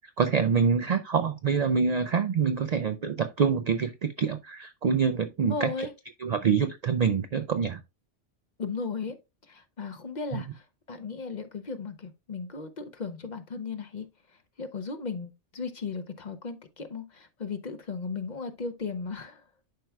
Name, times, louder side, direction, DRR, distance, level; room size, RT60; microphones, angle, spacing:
voice 1, 0.2-5.9 6.2-7.8 10.3-10.4, right 6 dB, 70° right, 0.4 m, -26 dB
voice 2, 5.4-5.9 8.6-9.2 9.5-14.1 14.6-19.4, left 4 dB, 45° left, 0.7 m, -36 dB
11.0 x 4.5 x 2.2 m
omnidirectional pair, 1.2 m